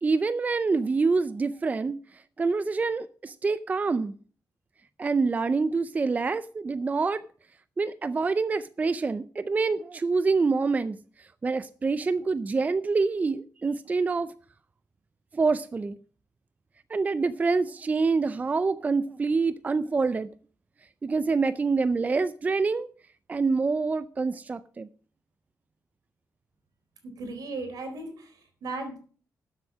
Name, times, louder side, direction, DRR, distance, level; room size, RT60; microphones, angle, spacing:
voice 1, 0.0-4.1 5.0-7.2 7.8-14.3 15.3-16.0 16.9-20.3 21.0-22.9 23.3-24.9, right 4 dB, 25° right, 0.4 m, -26 dB
voice 2, 27.0-29.0, right 3 dB, 80° right, 4.0 m, -36 dB
12.5 x 7.8 x 6.1 m
wide cardioid pair, 155°, 6 cm